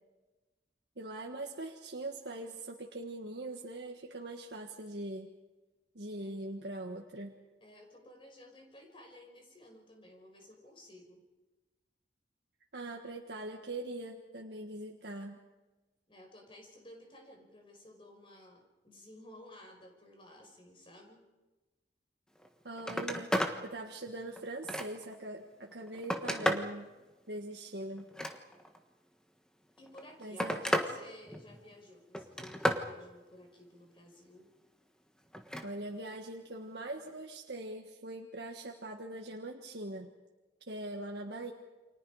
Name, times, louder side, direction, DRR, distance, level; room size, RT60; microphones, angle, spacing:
voice 1, 1.0-5.3 5.9-7.3 12.7-15.4 22.6-26.9 27.3-28.1 30.2-30.7 35.6-40.1 40.7-41.5, right 2 dB, 70° right, 1 dB, 1.6 m, -42 dB
voice 2, 6.1-6.5 7.6-11.2 16.1-21.2 29.8-34.5, left 1 dB, 30° left, 2 dB, 5.2 m, -54 dB
Telephone, 22.4-22.5 22.8-23.6 24.1-25.2 25.7-26.7 28.0-28.8 29.8-30.9 31.3-31.7 32.1-32.9 35.3-35.7 37.1-37.2, equal, 5° left, 1.4 m, -33 dB
29.5 x 25.5 x 4.9 m, 1.2 s
head